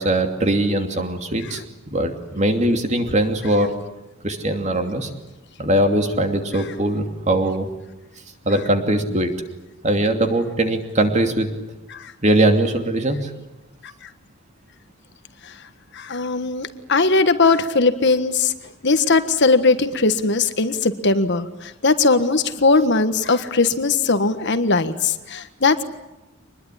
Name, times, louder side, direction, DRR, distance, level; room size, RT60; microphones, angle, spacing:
voice 1, 0.0-1.6 1.9-3.7 4.2-5.1 5.6-7.7 8.4-9.3 9.8-11.5 12.2-13.3, right 1 dB, 35° right, 5 dB, 2.8 m, -20 dB
voice 2, 16.0-18.5 18.8-25.8, left 3 dB, 55° left, 10 dB, 1.5 m, -19 dB
24.5 x 21.0 x 10.0 m, 1.0 s
head